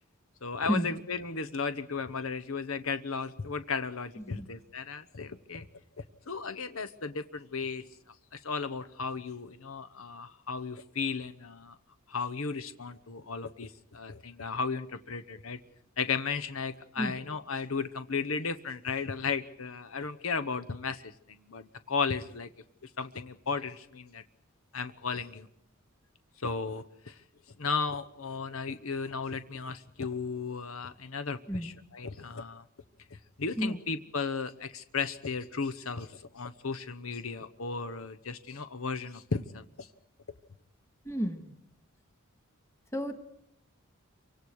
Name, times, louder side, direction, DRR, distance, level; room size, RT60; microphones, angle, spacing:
voice 1, 0.4-5.7 6.3-7.8 8.3-11.7 12.1-15.6 16.0-21.1 21.5-22.5 23.0-24.2 24.7-25.5 26.4-27.2 27.6-32.6 33.4-39.9, left 5 dB, 75° left, 10 dB, 1.1 m, -35 dB
voice 2, 4.2-4.5 17.0-17.2 31.5-31.7 33.6-33.8 41.0-41.5 42.9-43.1, equal, 15° left, 7 dB, 2.1 m, -32 dB
28.5 x 24.5 x 4.9 m, 0.72 s
head